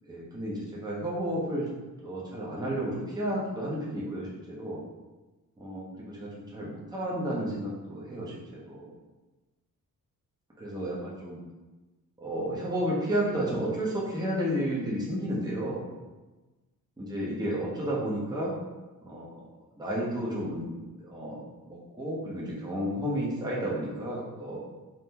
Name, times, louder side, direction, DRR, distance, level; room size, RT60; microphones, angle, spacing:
voice 1, 0.0-1.7 2.0-4.8 5.6-8.9 10.6-11.4 12.2-15.8 17.0-18.5 19.1-19.4 19.8-20.7 21.0-24.6, equal, 10° right, -5 dB, 0.6 m, -32 dB
3.6 x 2.0 x 2.8 m, 1.2 s
cardioid pair, 115°, 37 cm